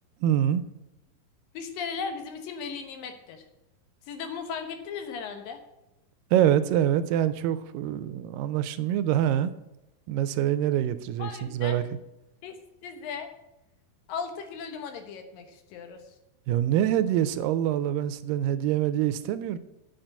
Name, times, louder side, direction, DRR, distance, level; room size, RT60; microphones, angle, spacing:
voice 1, 0.2-0.6 6.3-9.5 10.1-11.8 16.5-19.6, right 11 dB, 85° right, 2.3 m, -25 dB
voice 2, 1.5-3.4 4.1-5.6 11.2-11.8 12.4-12.5 12.8-13.3 14.1-16.0, left 6 dB, 80° left, 2.8 m, -36 dB
8.8 x 5.8 x 8.0 m
omnidirectional pair, 4.0 m